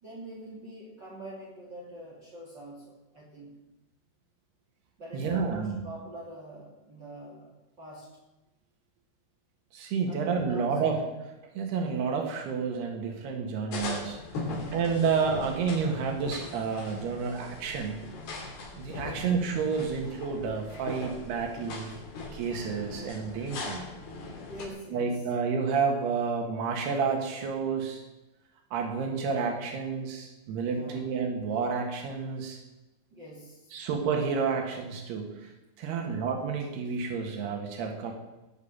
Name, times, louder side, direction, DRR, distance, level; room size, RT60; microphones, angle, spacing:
voice 1, 0.0-3.6 5.0-8.2 10.1-10.9 14.4-14.8 18.9-19.3 24.5-25.2 30.6-31.2 33.1-33.8 35.9-36.3, right 1 dB, 30° right, -4 dB, 3.3 m, -45 dB
voice 2, 5.1-5.9 9.7-11.0 11.4-14.2 14.7-18.0 18.8-21.9 22.3-23.9 24.9-28.0 28.7-32.6 33.7-35.5 35.8-38.1, right 5 dB, 90° right, 2 dB, 3.9 m, -30 dB
sound 1, 13.7-24.7, left 3 dB, 85° left, 5.1 m, -40 dB
18.5 x 7.1 x 8.8 m, 1.0 s
omnidirectional pair, 4.5 m